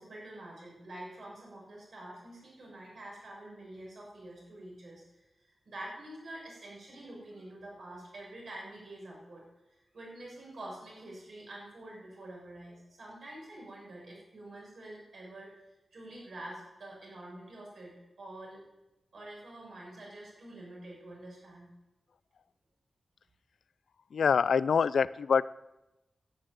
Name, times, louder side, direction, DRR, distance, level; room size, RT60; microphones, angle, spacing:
voice 1, 0.0-5.0 5.6-9.4 9.9-15.5 15.9-18.7 19.1-21.7, right 1 dB, 60° right, -3 dB, 6.5 m, -47 dB
voice 2, 24.1-25.4, left 6 dB, 80° left, 18 dB, 0.4 m, -25 dB
11.0 x 8.9 x 9.2 m, 0.99 s
wide cardioid pair, 165°, 0 cm